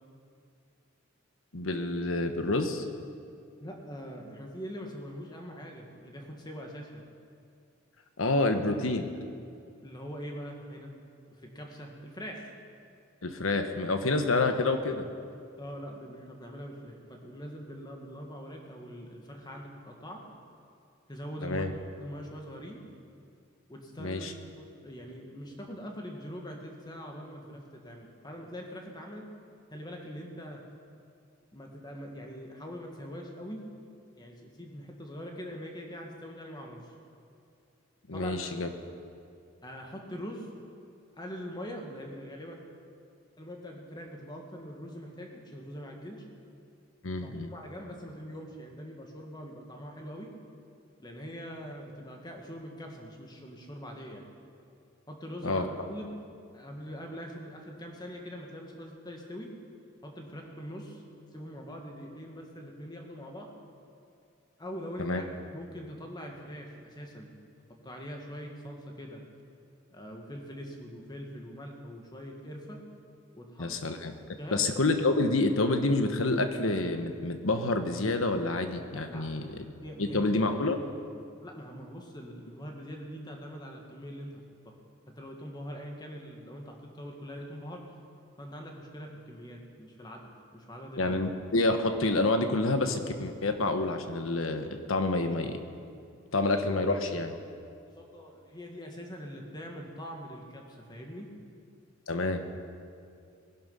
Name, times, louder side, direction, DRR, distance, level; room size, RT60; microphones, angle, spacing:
voice 1, 1.5-2.8 8.2-9.1 13.2-15.1 21.4-21.7 24.0-24.3 38.1-38.7 47.0-47.5 55.4-55.7 65.0-65.2 73.6-74.1 74.5-79.6 80.0-80.8 91.0-95.6 96.3-97.3 102.1-102.6, left 2 dB, 80° left, 7 dB, 1.2 m, -28 dB
voice 2, 3.6-7.0 9.8-10.9 11.3-12.5 15.6-20.2 21.1-21.7 21.9-22.8 23.7-24.3 24.6-29.3 29.7-30.6 31.5-33.6 34.2-36.9 38.1-38.4 39.6-40.5 41.1-42.6 43.4-46.3 47.2-50.3 51.0-54.2 55.1-56.1 56.5-59.5 60.0-61.0 61.3-63.5 64.6-65.2 65.5-67.3 67.8-69.2 69.9-72.8 73.3-73.8 74.4-74.6 78.9-79.3 79.8-80.3 81.4-84.7 85.2-87.8 88.4-91.2 97.8-101.3, equal, 20° left, 1 dB, 1.9 m, -43 dB
20.0 x 11.5 x 5.6 m, 2.5 s
head